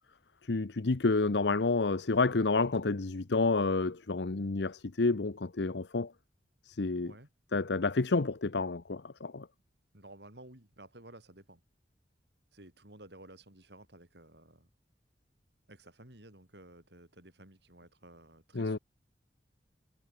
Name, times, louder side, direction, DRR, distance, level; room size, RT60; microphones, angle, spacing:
voice 1, 0.5-6.1 6.7-7.1 7.5-9.5 18.5-18.8, left 3 dB, 75° left, 0.8 m, -29 dB
voice 2, 9.9-11.6 12.5-14.7 15.7-18.8, right 1 dB, 65° right, 4.9 m, -54 dB
head